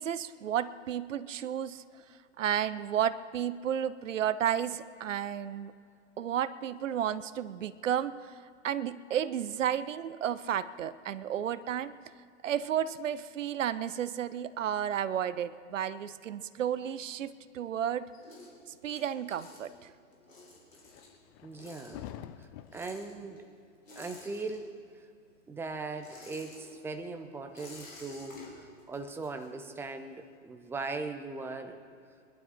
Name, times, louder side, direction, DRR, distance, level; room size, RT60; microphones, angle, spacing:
voice 1, 0.0-1.8 2.4-5.7 6.2-8.3 8.6-11.9 12.4-18.1 18.8-19.9, right 9 dB, 75° right, 15 dB, 0.7 m, -32 dB
sound 1, 15.9-17.5 17.8-25.0 25.3-30.0, left 2 dB, 90° left, 4.0 m, -53 dB
sound 2, 20.7-23.3, left 12 dB, 25° left, 0.4 m, -48 dB
voice 2, 21.4-22.0 22.4-23.5 24.0-24.8 25.5-31.8, right 3 dB, 5° right, 7 dB, 0.7 m, -39 dB
22.5 x 12.0 x 4.3 m, 2.4 s
hypercardioid pair, 110°, 38 cm